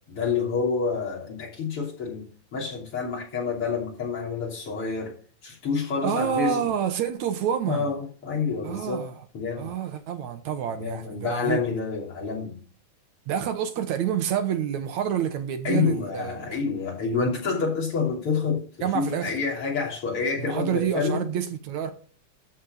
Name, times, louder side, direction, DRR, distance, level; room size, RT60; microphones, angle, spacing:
voice 1, 0.1-5.2 5.4-6.7 7.7-9.1 9.3-9.7 10.8-12.6 15.6-21.3, left 5 dB, 45° left, 3.8 m, -28 dB
voice 2, 6.0-7.9 8.6-9.3 9.6-11.6 13.3-16.6 18.8-19.3 20.4-21.9, right 9 dB, 75° right, 2.3 m, -28 dB
13.5 x 4.6 x 6.4 m
omnidirectional pair, 3.5 m